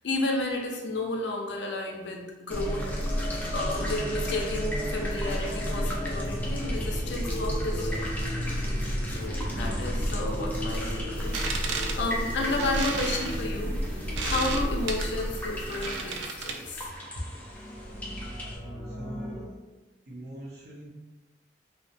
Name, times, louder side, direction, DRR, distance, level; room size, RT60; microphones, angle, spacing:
voice 1, 0.0-8.0 9.1-16.9, left 2 dB, 75° left, 1 dB, 0.5 m, -32 dB
sound 1, 2.5-18.6, equal, 10° left, 0.4 m, -32 dB
sound 2, 5.1-13.2 17.2-19.5, equal, 10° right, 0.9 m, -39 dB
sound 3, 11.2-16.8, right 4 dB, 85° right, 0.3 m, -35 dB
voice 2, 19.0-19.5 20.1-20.9, right 1 dB, 60° right, -4 dB, 0.7 m, -42 dB
2.8 x 2.1 x 2.5 m, 1.2 s
head